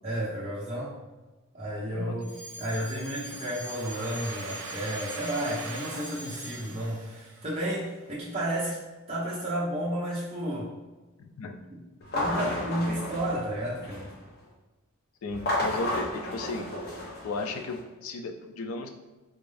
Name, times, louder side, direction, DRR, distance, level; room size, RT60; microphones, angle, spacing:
voice 1, 0.0-0.9 1.5-2.3 2.6-8.8 9.1-10.7 11.7-11.8 12.1-14.1, right 1 dB, 30° right, -9 dB, 0.8 m, -32 dB
Alarm, 2.2-6.9, equal, 5° left, 1.4 m, -44 dB
Domestic sounds home sounds, 3.3-8.1, right 3 dB, 80° right, 0.7 m, -42 dB
voice 2, 11.2-11.6 12.0-12.1 15.2-16.7 17.2-18.9, left 3 dB, 75° left, 5 dB, 0.4 m, -35 dB
sound 1, 12.0-14.2 15.3-17.8, left 1 dB, 45° left, 0.7 m, -32 dB
3.6 x 2.5 x 3.3 m, 1.2 s
head